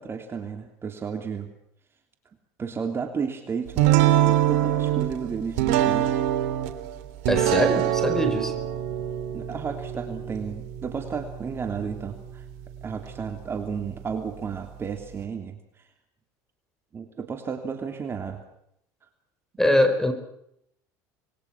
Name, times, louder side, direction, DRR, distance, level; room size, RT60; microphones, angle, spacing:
voice 1, 0.0-1.5 2.6-6.2 9.3-12.4 12.8-15.6 16.9-18.4, right 6 dB, 30° right, 5 dB, 3.1 m, -33 dB
sound 1, 3.8-15.2, right 12 dB, 80° right, 3.3 m, -26 dB
voice 2, 7.3-8.5 19.6-20.1, left 1 dB, 5° left, 10 dB, 5.2 m, -22 dB
26.0 x 22.5 x 6.0 m, 0.75 s
supercardioid pair, 110°, 9 cm